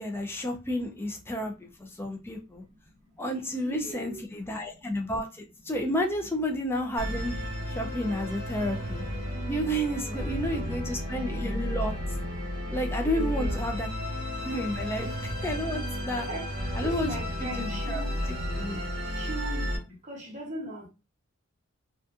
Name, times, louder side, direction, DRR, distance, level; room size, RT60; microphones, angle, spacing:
voice 1, 0.0-2.6 3.2-7.4 7.7-9.0 9.5-11.9 12.7-13.9 14.4-16.3 16.7-17.1 17.4-18.8, equal, 10° left, 0.3 m, -31 dB
voice 2, 3.3-4.2 10.0-10.8 13.0-13.6 16.3-16.5 16.8-18.1 18.8-20.9, right 1 dB, 35° right, 0.8 m, -39 dB
Musical instrument, 7.0-19.8, equal, 50° right, 1.2 m, -33 dB
2.5 x 2.4 x 2.4 m
head